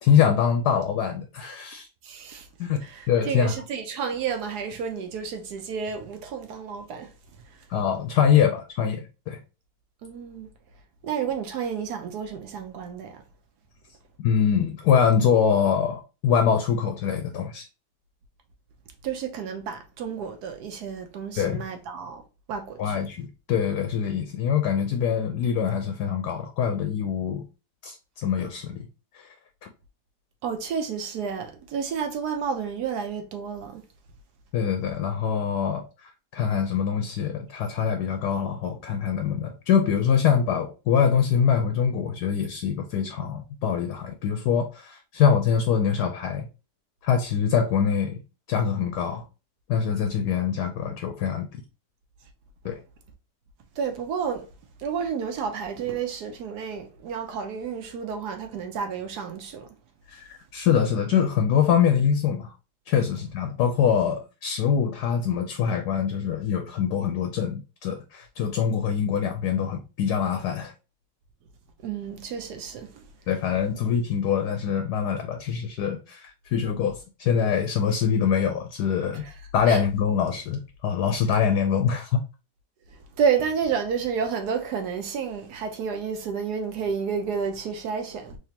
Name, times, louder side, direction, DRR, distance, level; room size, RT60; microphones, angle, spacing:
voice 1, 0.0-1.9 2.6-2.8 3.1-3.5 7.7-9.4 14.2-17.6 21.4-21.6 22.8-27.4 27.8-28.9 29.1-29.3 34.5-46.5 47.0-48.2 48.5-49.2 49.7-51.6 52.6-52.8 60.1-62.5 62.9-70.7 73.3-79.2 79.5-82.2, left 7 dB, 70° left, 1.0 m, -24 dB
voice 2, 2.0-2.5 2.8-7.1 10.0-10.5 11.0-13.2 19.0-22.2 22.5-23.0 30.4-33.8 53.8-54.5 54.8-59.7 71.8-73.1 79.2-79.3 79.7-79.8 83.2-88.4, right 6 dB, 65° right, 1.1 m, -30 dB
3.7 x 3.1 x 2.8 m
omnidirectional pair, 2.0 m